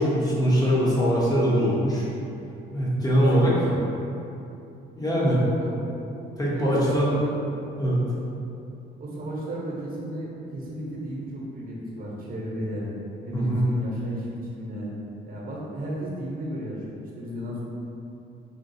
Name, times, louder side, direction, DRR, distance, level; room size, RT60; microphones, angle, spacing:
voice 1, 0.0-2.1 2.7-3.5 4.9-5.4 6.4-7.1 7.8-8.0 13.3-13.6, equal, 20° left, -6 dB, 0.9 m, -22 dB
voice 2, 3.1-3.8 5.6-6.0 6.5-7.4 9.0-12.9 13.2-14.9 15.2-17.6, right 1 dB, 45° right, -4 dB, 0.9 m, -34 dB
3.8 x 2.4 x 2.7 m, 2.8 s
cardioid pair, 90°, 20 cm